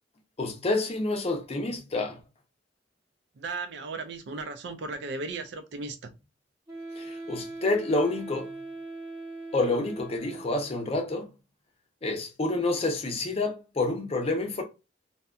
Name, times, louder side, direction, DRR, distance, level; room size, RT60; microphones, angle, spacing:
voice 1, 0.4-2.2 7.0-8.5 9.5-11.3 12.0-14.6, left 2 dB, 35° left, 0.5 m, -28 dB
voice 2, 3.4-6.1, right 3 dB, 65° right, 0.4 m, -36 dB
Wind instrument woodwind instrument, 6.7-10.8, right 2 dB, 20° right, 0.8 m, -40 dB
2.7 x 2.2 x 2.3 m
head